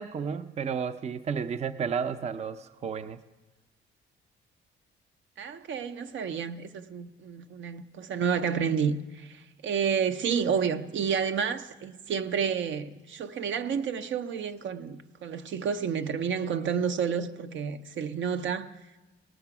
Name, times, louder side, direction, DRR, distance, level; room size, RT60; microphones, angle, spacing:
voice 1, 0.0-3.2, right 6 dB, 35° right, 0.5 m, -32 dB
voice 2, 5.4-18.7, right 7 dB, 70° right, 0.7 m, -30 dB
18.5 x 6.7 x 5.9 m
cardioid pair, 90°, 20 cm